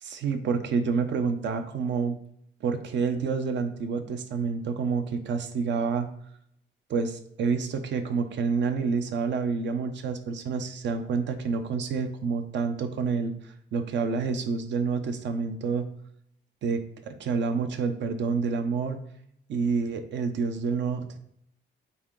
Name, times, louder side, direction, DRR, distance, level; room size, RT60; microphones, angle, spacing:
voice 1, 0.0-2.2 2.6-6.1 6.9-15.8 16.6-19.0 19.5-21.2, right 5 dB, 65° right, 8 dB, 0.9 m, -28 dB
8.5 x 3.6 x 3.8 m, 0.70 s
cardioid pair, 90°, 20 cm